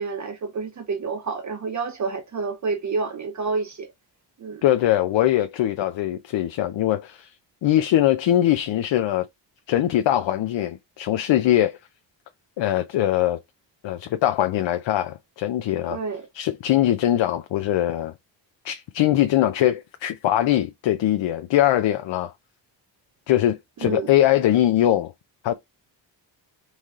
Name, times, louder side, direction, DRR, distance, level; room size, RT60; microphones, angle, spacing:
voice 1, 0.0-3.9 4.4-4.6 15.9-16.3 23.8-24.1, right 4 dB, 40° right, 0.7 m, -29 dB
voice 2, 4.6-7.3 7.6-9.2 9.7-11.8 12.6-13.4 13.8-16.0 16.3-18.1 18.6-22.3 23.3-25.1 25.4-25.5, left 12 dB, 75° left, 0.7 m, -21 dB
4.1 x 3.3 x 3.6 m
wide cardioid pair, 160°, 45 cm